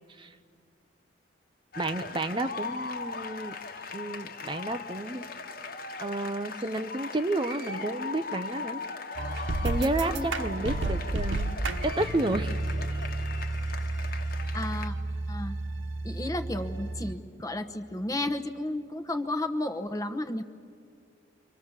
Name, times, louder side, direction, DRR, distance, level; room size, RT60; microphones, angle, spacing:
sound 1, 1.7-14.9, left 4 dB, 50° left, 1.4 m, -39 dB
voice 1, 1.8-3.5 3.9-5.3 6.0-8.8 9.6-11.6 11.8-12.5, right 2 dB, 25° right, 9 dB, 0.6 m, -31 dB
sound 2, 9.2-17.1, right 2 dB, 80° right, 1.4 m, -32 dB
voice 2, 14.5-14.9 15.3-15.6 16.0-20.4, left 1 dB, 20° left, 8 dB, 1.0 m, -32 dB
29.0 x 25.5 x 7.3 m, 2.3 s
head